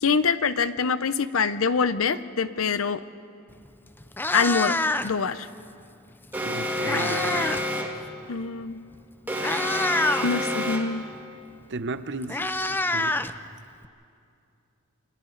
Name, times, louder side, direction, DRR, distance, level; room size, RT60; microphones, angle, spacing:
voice 1, 0.0-3.0 4.3-4.8 5.0-5.5 8.3-8.8 10.2-11.0, left 5 dB, 70° left, 13 dB, 0.7 m, -24 dB
Meow, 3.5-3.7 4.0-5.3 6.4-7.7 8.0-8.2 8.9-9.0 9.4-10.3 11.6-11.7 12.0-13.9, left 2 dB, 10° left, 0.5 m, -27 dB
Alarm, 6.3-8.1 9.3-11.1, equal, 10° right, 1.9 m, -29 dB
voice 2, 6.4-7.6 11.7-13.2, right 3 dB, 60° right, 11 dB, 0.9 m, -35 dB
29.5 x 25.0 x 4.0 m, 2.5 s
head